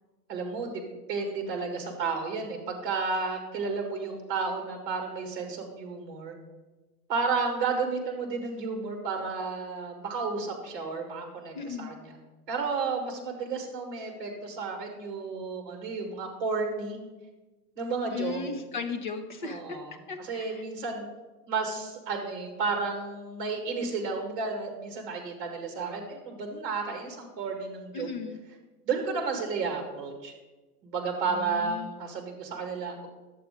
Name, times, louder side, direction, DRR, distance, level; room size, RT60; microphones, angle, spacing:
voice 1, 0.3-0.8 1.1-6.4 7.1-12.2 12.5-17.0 17.8-18.4 19.4-21.1 21.5-28.1 28.9-30.3 30.8-33.1, right 4 dB, 35° right, 3 dB, 1.8 m, -32 dB
voice 2, 11.5-11.9 18.1-19.8 20.1-20.6 27.9-28.4 31.3-31.9, left 5 dB, 30° left, 5 dB, 0.5 m, -36 dB
11.0 x 7.6 x 3.7 m, 1.2 s
supercardioid pair, 180°, 48 cm